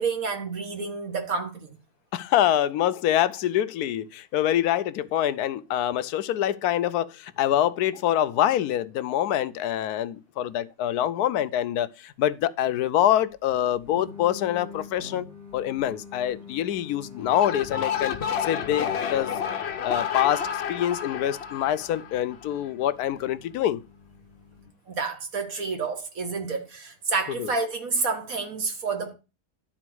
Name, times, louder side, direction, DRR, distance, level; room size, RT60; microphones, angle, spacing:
voice 1, 0.0-1.8 24.9-29.1, right 4 dB, 60° right, 1.9 m, -29 dB
voice 2, 2.1-15.3 15.5-19.4 19.8-23.8 27.4-27.5, left 11 dB, 75° left, 1.1 m, -25 dB
sound 1, 13.9-24.7, left 5 dB, 75° right, 4.6 m, -46 dB
sound 2, 17.2-22.5, left 8 dB, 50° left, 0.9 m, -30 dB
11.0 x 4.2 x 6.1 m
omnidirectional pair, 1.7 m